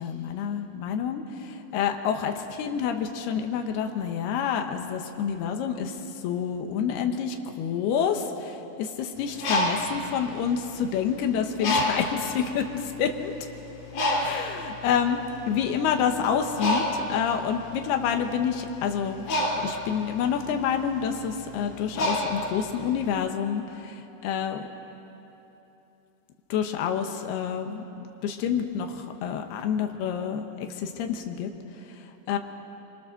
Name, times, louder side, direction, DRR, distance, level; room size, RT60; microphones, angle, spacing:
voice 1, 0.0-13.3 14.2-19.2 19.6-24.6 26.5-27.8 28.2-31.5 32.3-32.4, left 7 dB, 70° left, 5 dB, 2.7 m, -28 dB
Bird, 9.2-11.1 11.6-12.3 13.0-13.1 13.4-23.1, left 1 dB, 50° left, 5.1 m, -29 dB
27.5 x 24.5 x 6.7 m, 3.0 s
omnidirectional pair, 5.6 m